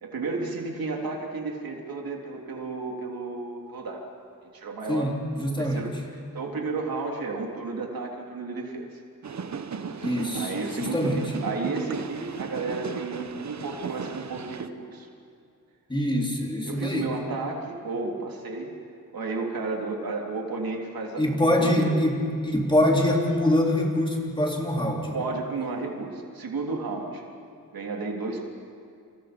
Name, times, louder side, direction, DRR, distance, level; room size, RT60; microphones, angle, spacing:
voice 1, 0.0-4.0 4.4-5.1 5.6-9.0 10.3-15.1 16.6-18.7 19.1-22.0 25.1-27.2 27.7-28.5, right 3 dB, 80° right, 1 dB, 3.4 m, -32 dB
voice 2, 5.4-5.8 10.0-10.5 10.8-11.2 15.9-17.1 21.2-25.2, left 1 dB, 15° left, -1 dB, 3.7 m, -24 dB
sound 1, 9.2-14.7, right 6 dB, 50° right, 1.1 m, -36 dB
29.0 x 27.0 x 5.3 m, 2.4 s
wide cardioid pair, 125°, 35 cm